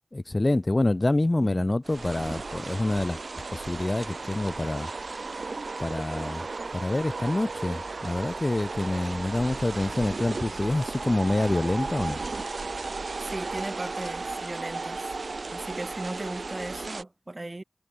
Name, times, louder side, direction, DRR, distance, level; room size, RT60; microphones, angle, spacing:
voice 1, 0.1-3.2 3.5-4.9 5.8-6.4 6.7-12.2, left 2 dB, 35° left, 0.8 m, -26 dB
sound 1, 1.8-17.0, right 3 dB, 75° right, 0.8 m, -35 dB
voice 2, 13.2-15.1 15.5-17.6, right 2 dB, 35° right, 2.5 m, -37 dB
wide cardioid pair, 50°, 0 cm